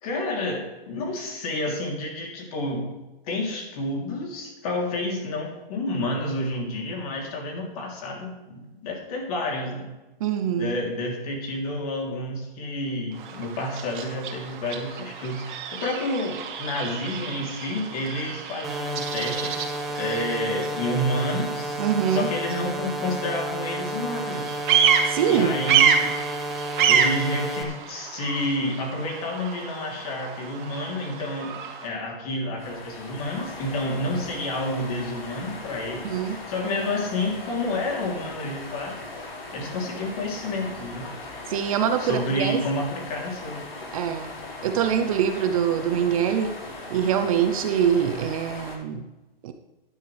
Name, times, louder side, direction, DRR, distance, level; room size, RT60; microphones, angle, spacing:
voice 1, 0.0-2.9 3.3-9.9 10.5-21.8 22.1-24.6 25.3-26.1 26.9-39.1 39.5-41.1 42.0-43.6, left 1 dB, 40° left, 0 dB, 3.4 m, -30 dB
voice 2, 10.2-10.8 21.8-22.3 25.0-25.5 36.0-36.4 41.5-42.6 43.9-44.3 44.6-46.6 46.9-49.0 49.4-49.5, right 8 dB, 35° right, 7 dB, 0.7 m, -24 dB
Bird vocalization bird call bird song, 13.1-31.9, right 8 dB, 55° right, 2.0 m, -28 dB
sound 1, 18.6-27.6, right 1 dB, ahead, 0.6 m, -32 dB
sound 2, 32.6-48.8, left 2 dB, 75° left, 4.8 m, -39 dB
14.5 x 11.0 x 3.4 m, 1.1 s
hypercardioid pair, 160°, 30 cm